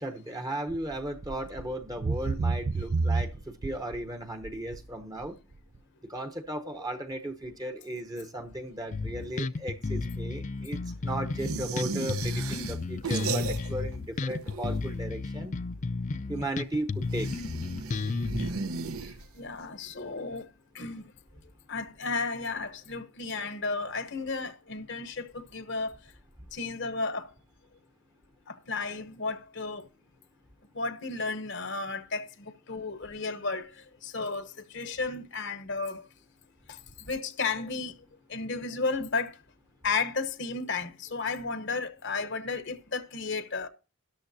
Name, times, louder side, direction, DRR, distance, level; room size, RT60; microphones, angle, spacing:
voice 1, 0.0-5.3 6.1-15.5 16.3-17.3, right 1 dB, 15° right, 0.8 m, -36 dB
sound 1, 0.7-0.9 1.2-1.7 2.0-4.0 4.4-4.8 5.3-5.4, right 3 dB, 35° right, 0.4 m, -29 dB
Bass guitar, 8.9-18.5, left 3 dB, 35° left, 0.4 m, -33 dB
sound 2, 11.4-14.0 14.2-15.0 17.0-19.6, right 4 dB, 75° right, 0.9 m, -35 dB
voice 2, 19.4-20.4 20.7-21.0 21.7-25.9 26.5-27.3 28.5-29.9 30.7-33.7 34.0-36.0 36.7-36.8 37.1-37.9 38.3-39.4 39.8-43.7, left 4 dB, 50° left, 0.9 m, -33 dB
13.0 x 11.0 x 2.7 m
head